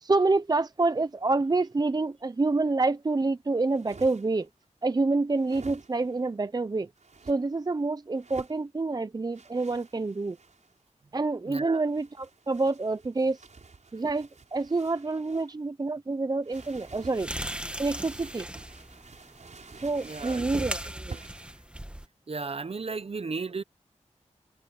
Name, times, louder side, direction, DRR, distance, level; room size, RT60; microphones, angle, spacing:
voice 1, 0.0-4.5 4.8-6.9 7.3-10.4 11.1-13.4 13.9-17.3 17.8-18.5 19.8-21.2, right 3 dB, 30° right, 0.6 m, -27 dB
sound 1, 3.6-4.5 5.3-6.2 7.0-7.4 8.1-8.6 9.3-10.8 11.8-15.6 16.4-17.2 17.8-20.5 21.1-21.6, right 4 dB, 70° right, 5.8 m, -49 dB
voice 2, 11.4-11.8 20.0-20.9 22.3-23.6, right 4 dB, 50° right, 0.9 m, -35 dB
sound 2, 16.5-22.1, right 1 dB, 10° right, 1.5 m, -38 dB
wide cardioid pair, 85°, 13 cm